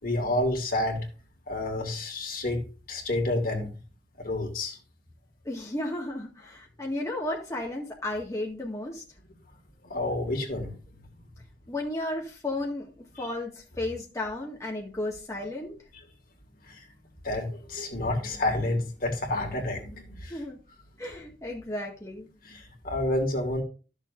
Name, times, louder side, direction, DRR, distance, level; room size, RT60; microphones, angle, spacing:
voice 1, 0.0-1.1 1.5-2.6 2.9-3.7 4.2-4.8 9.8-10.8 13.2-13.3 16.7-16.8 17.2-20.4 22.4-23.6, left 1 dB, 55° left, 2.4 m, -29 dB
voice 2, 5.4-9.0 11.7-12.9 13.2-15.8 20.3-20.6 21.0-22.3, left 1 dB, 15° left, 1.8 m, -33 dB
13.5 x 6.7 x 2.6 m
head